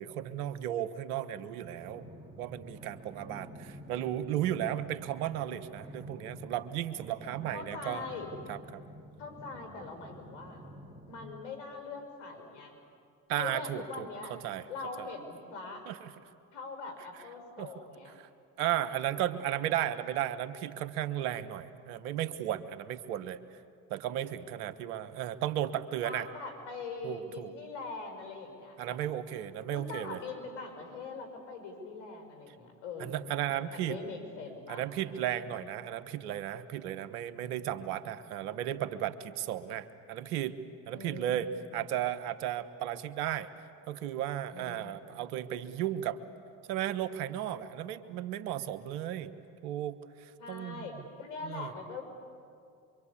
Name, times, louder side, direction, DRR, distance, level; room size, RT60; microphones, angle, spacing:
voice 1, 0.0-2.1 2.4-8.1 8.5-8.8 13.3-14.7 15.0-15.1 15.9-16.1 17.6-17.7 18.2-18.3 18.6-23.4 23.9-26.3 27.0-27.5 28.8-30.2 33.0-34.0 34.7-40.6 40.9-43.5 43.9-46.2 46.7-49.3 49.6-50.9 51.4-51.7, right 11 dB, 80° right, 13 dB, 1.3 m, -35 dB
sound 1, 1.7-11.3, equal, 10° right, 4.1 m, -49 dB
voice 2, 7.5-8.3 9.2-10.6 11.1-12.8 13.4-14.4 14.7-15.9 16.5-18.2 26.0-29.0 29.7-35.3 37.6-38.1 40.9-41.7 44.5-45.2 50.4-52.0, left 4 dB, 70° left, 5 dB, 5.9 m, -43 dB
25.5 x 24.0 x 8.6 m, 2.4 s
hypercardioid pair, 75°, 43 cm